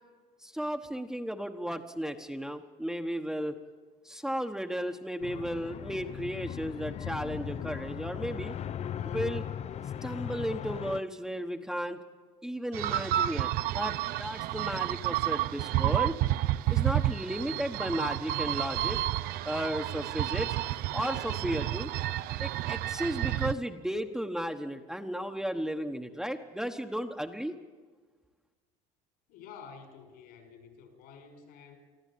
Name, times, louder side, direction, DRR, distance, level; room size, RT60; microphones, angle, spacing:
voice 1, 0.4-3.6 4.0-8.5 9.0-9.4 10.0-12.0 12.4-16.1 16.7-19.0 19.4-20.6 20.9-21.9 22.4-27.5, equal, 5° right, 4 dB, 1.2 m, -34 dB
sound 1, 5.2-11.0, left 9 dB, 40° left, 0.6 m, -38 dB
sound 2, 12.7-23.5, right 14 dB, 65° right, 0.6 m, -30 dB
voice 2, 29.3-31.8, left 6 dB, 70° left, 6 dB, 5.3 m, -50 dB
24.5 x 14.0 x 8.6 m, 1.4 s
supercardioid pair, 105°, 17 cm